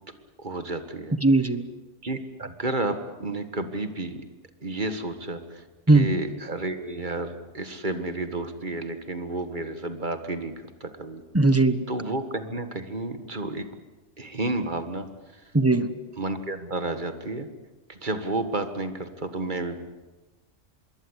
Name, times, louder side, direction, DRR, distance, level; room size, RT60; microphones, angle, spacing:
voice 1, 0.4-1.2 2.0-4.3 4.6-10.5 10.8-11.2 11.9-13.7 14.2-15.1 15.3-15.4 16.2-17.5 17.9-19.8, right 2 dB, 40° right, 8 dB, 1.8 m, -31 dB
voice 2, 1.2-1.7 5.9-6.1 11.3-11.8 15.5-15.9, right 2 dB, 10° right, 11 dB, 1.1 m, -19 dB
26.0 x 22.0 x 8.2 m, 1.2 s
omnidirectional pair, 1.3 m